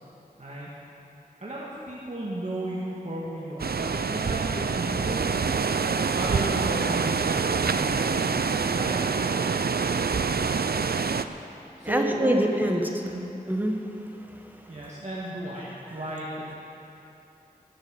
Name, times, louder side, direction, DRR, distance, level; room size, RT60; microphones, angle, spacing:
voice 1, 0.4-0.7 1.4-5.2 6.1-8.4 8.7-9.0 11.8-12.7 13.0-13.3 14.7-16.5, right 1 dB, 45° right, -6 dB, 2.0 m, -34 dB
sound 1, 3.6-11.2, right 5 dB, 75° right, 0.5 m, -26 dB
voice 2, 11.8-13.0 13.5-13.8, equal, 10° right, 2 dB, 1.5 m, -24 dB
17.5 x 8.8 x 7.1 m, 2.8 s
wide cardioid pair, 65°, 16 cm